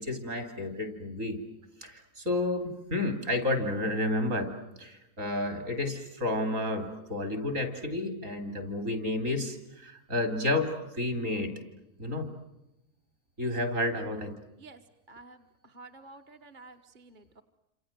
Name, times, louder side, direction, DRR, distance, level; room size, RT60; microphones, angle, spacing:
voice 1, 0.0-1.4 1.8-4.5 4.8-11.5 12.0-12.3 13.4-14.3, left 1 dB, 50° right, 9 dB, 4.2 m, -31 dB
voice 2, 15.1-17.4, right 3 dB, 30° right, 5 dB, 1.4 m, -51 dB
29.0 x 27.0 x 7.6 m, 0.90 s
omnidirectional pair, 1.7 m